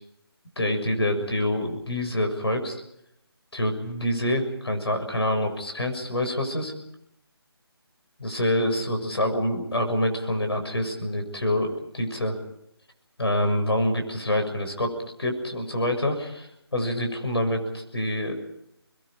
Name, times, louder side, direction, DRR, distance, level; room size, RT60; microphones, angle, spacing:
voice 1, 0.6-2.8 3.5-6.7 8.2-12.4 13.2-18.4, left 1 dB, 75° left, 5 dB, 6.8 m, -26 dB
30.0 x 21.5 x 5.1 m, 0.78 s
figure-of-eight pair, 155°, 13 cm